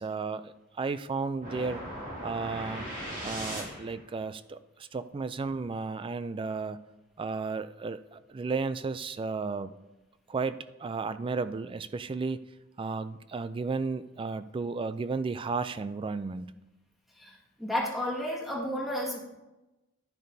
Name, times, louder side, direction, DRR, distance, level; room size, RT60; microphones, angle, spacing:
voice 1, 0.0-1.8 2.2-2.9 3.2-6.8 7.2-9.7 10.3-12.4 12.8-16.5, right 4 dB, 25° right, 13 dB, 0.3 m, -33 dB
sound 1, 1.4-4.1, equal, 45° right, 2.5 m, -38 dB
voice 2, 17.2-19.2, equal, ahead, -3 dB, 1.7 m, -32 dB
10.5 x 10.5 x 2.7 m, 1.0 s
head